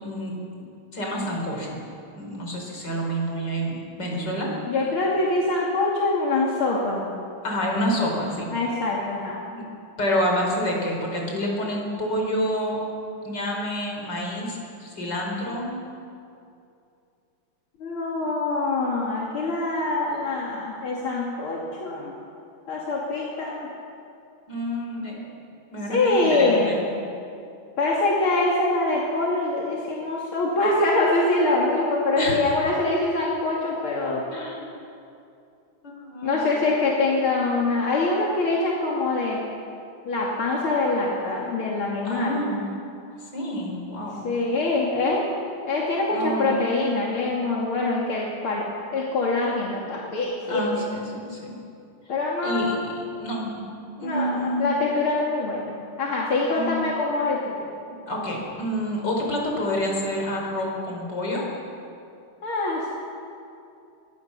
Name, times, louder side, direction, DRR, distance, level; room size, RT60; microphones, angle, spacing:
voice 1, 0.0-0.3 0.9-1.8 2.2-4.5 7.4-8.5 9.5-9.6 10.0-12.8 13.2-15.7 19.5-19.7 24.5-25.3 25.7-26.9 32.2-32.4 34.3-34.7 35.8-36.6 42.1-42.7 43.2-44.3 46.1-46.5 50.4-51.6 52.4-52.9 53.2-53.7 54.0-54.8 56.5-56.9 58.1-61.4, equal, 55° left, -1 dB, 5.5 m, -28 dB
voice 2, 4.7-7.0 8.5-9.4 17.8-22.1 22.7-23.7 25.9-26.8 27.8-34.2 36.2-39.4 40.0-42.4 44.2-45.2 45.7-50.8 52.1-52.9 54.0-57.6 62.4-62.9, left 2 dB, 75° left, -4 dB, 3.3 m, -24 dB
24.0 x 21.5 x 6.8 m, 2.6 s
omnidirectional pair, 2.3 m